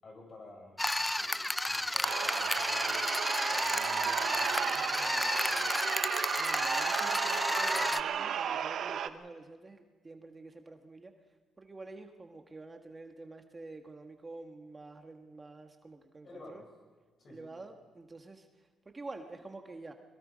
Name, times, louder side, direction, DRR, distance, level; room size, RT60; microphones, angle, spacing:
voice 1, 0.0-6.0 16.2-16.6 17.2-17.5, left 2 dB, 45° left, 1 dB, 7.5 m, -52 dB
sound 1, 0.8-8.0, left 1 dB, 10° left, 0.7 m, -32 dB
sound 2, 2.0-9.1, right 8 dB, 65° right, 0.9 m, -34 dB
voice 2, 6.4-16.6 17.3-19.9, right 3 dB, 25° right, 5 dB, 1.5 m, -48 dB
23.0 x 22.0 x 5.2 m, 1.3 s
cardioid pair, 90°, 0 cm